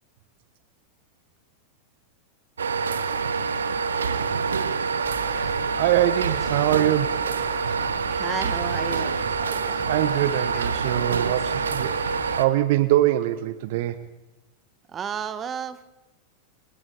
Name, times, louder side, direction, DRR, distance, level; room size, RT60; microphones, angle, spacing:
sound 1, 2.6-12.5, right 5 dB, 70° right, 1.4 m, -26 dB
sound 2, 5.0-12.4, right 1 dB, 5° right, 3.0 m, -42 dB
voice 1, 5.7-7.2 9.8-11.9 12.4-14.0, right 14 dB, 50° right, 13 dB, 1.0 m, -23 dB
voice 2, 8.1-9.2 14.9-15.8, right 7 dB, 25° right, 13 dB, 1.5 m, -31 dB
29.0 x 25.5 x 4.1 m, 1.1 s
figure-of-eight pair, 90°, 0 cm